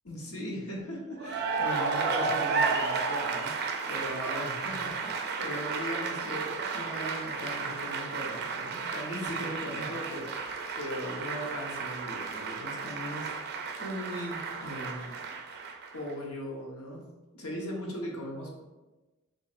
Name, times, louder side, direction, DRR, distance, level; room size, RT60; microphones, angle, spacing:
voice 1, 0.0-10.4 10.8-15.2 15.9-17.1 17.3-18.6, equal, 85° left, -2 dB, 1.1 m, -38 dB
Cheering / Applause, 1.2-16.1, right 5 dB, 50° right, 0.4 m, -33 dB
7.3 x 2.6 x 2.5 m, 1.1 s
head